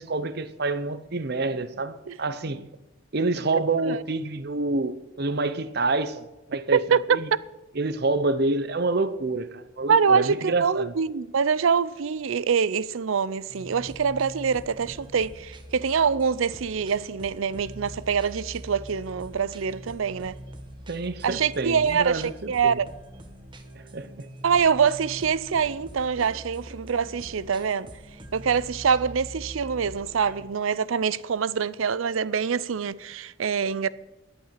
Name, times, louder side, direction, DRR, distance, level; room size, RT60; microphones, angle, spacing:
voice 1, 0.0-2.7 3.1-7.3 7.7-10.9 20.9-22.8 23.9-24.3 26.2-26.3, right 3 dB, 50° right, 0.8 m, -28 dB
voice 2, 9.9-20.4 21.2-22.9 24.4-27.9 28.3-33.9, right 6 dB, 80° right, 0.5 m, -25 dB
sound 1, 13.5-30.5, equal, 25° right, 1.1 m, -43 dB
11.5 x 8.7 x 7.5 m
head